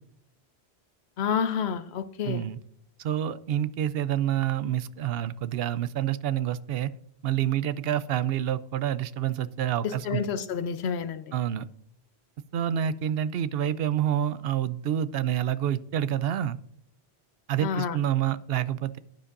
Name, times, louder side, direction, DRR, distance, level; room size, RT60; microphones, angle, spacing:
voice 1, 1.2-2.4 9.8-11.3 17.6-18.0, left 7 dB, 85° left, 13 dB, 0.9 m, -29 dB
voice 2, 2.2-2.6 3.0-6.9 7.2-10.2 11.3-11.7 12.5-16.6 17.5-19.0, right 10 dB, 70° right, 16 dB, 0.7 m, -28 dB
11.5 x 9.7 x 2.5 m, 0.69 s
omnidirectional pair, 1.1 m